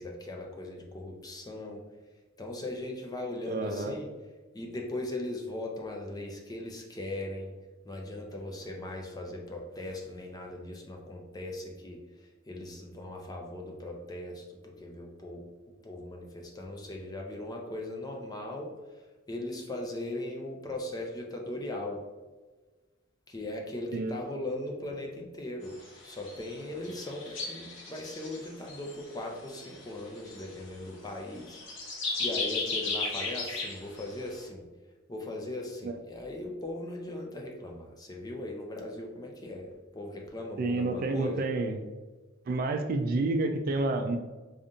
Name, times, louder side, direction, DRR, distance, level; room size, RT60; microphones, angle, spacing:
voice 1, 0.0-1.8 2.4-4.1 4.5-7.5 7.8-12.0 12.5-15.5 15.8-18.7 19.3-22.0 23.3-25.8 26.0-31.6 31.9-34.6 35.1-41.4, left 1 dB, 20° left, 1 dB, 0.5 m, -39 dB
voice 2, 3.5-3.9 23.9-24.1 35.8-36.0 40.6-41.8 42.5-44.2, right 2 dB, 45° right, 6 dB, 0.3 m, -29 dB
sound 1, 25.6-25.9 26.1-26.5 26.8-29.1 29.5-30.6 31.4-34.1, left 3 dB, 70° left, 0.9 m, -35 dB
5.0 x 2.4 x 2.7 m, 1.2 s
head